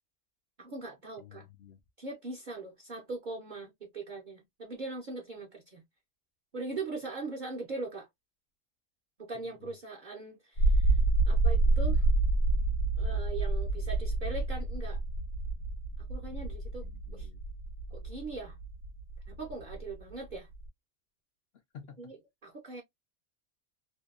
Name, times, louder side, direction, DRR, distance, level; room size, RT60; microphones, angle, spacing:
voice 1, 0.6-1.5 2.0-5.8 6.5-8.1 9.2-11.0 11.3-12.1 13.0-15.0 16.0-17.3 17.9-18.6 19.3-20.5 22.0-22.2 22.4-22.8, right 3 dB, 50° right, 0.6 m, -41 dB
voice 2, 1.2-1.8 9.5-9.7 16.8-17.4 21.7-22.0, left 7 dB, 60° left, 0.7 m, -51 dB
sound 1, 10.6-20.7, right 2 dB, 90° left, 1.1 m, -28 dB
2.7 x 2.2 x 2.3 m
omnidirectional pair, 1.4 m